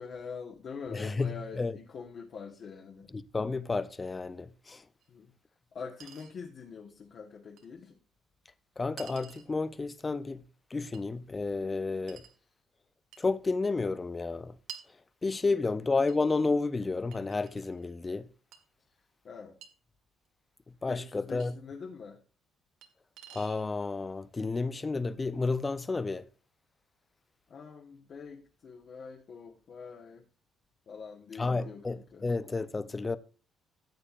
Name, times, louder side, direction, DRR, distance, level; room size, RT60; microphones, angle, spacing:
voice 1, 0.0-3.1 5.1-5.3 5.7-8.0 15.6-15.8 19.2-19.6 20.9-22.2 27.5-30.2 30.9-31.8 32.1-32.2, left 5 dB, 40° left, 1.1 m, -44 dB
voice 2, 0.9-1.8 3.1-4.9 8.8-10.5 10.7-12.2 13.2-14.6 14.9-18.3 20.7-21.6 23.3-26.3 31.3-33.2, left 3 dB, 20° left, 0.5 m, -31 dB
Chink clink, 5.0-5.1 6.0-6.3 7.6-7.7 9.0-9.5 10.9-11.1 12.1-12.4 13.1-13.3 14.7-14.9 16.1-16.2 17.1-17.8 18.5-18.6 19.6-19.7 21.4-21.5 22.8-22.9 23.2-23.6, right 9 dB, 85° right, 1.4 m, -49 dB
14.5 x 8.6 x 2.5 m
cardioid pair, 155°, 0 cm